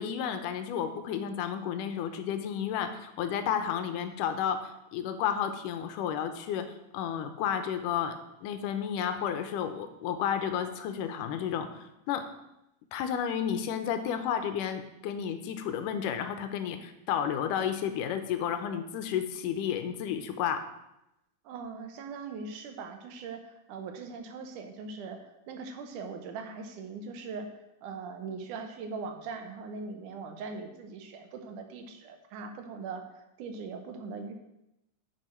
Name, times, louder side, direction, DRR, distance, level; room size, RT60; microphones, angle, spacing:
voice 1, 0.0-6.7 6.9-8.2 8.4-12.3 12.9-20.6, left 8 dB, 90° left, 8 dB, 2.3 m, -32 dB
voice 2, 21.4-27.5 27.8-34.3, right 4 dB, 75° right, 5 dB, 2.4 m, -41 dB
10.0 x 6.2 x 4.4 m, 0.89 s
omnidirectional pair, 3.7 m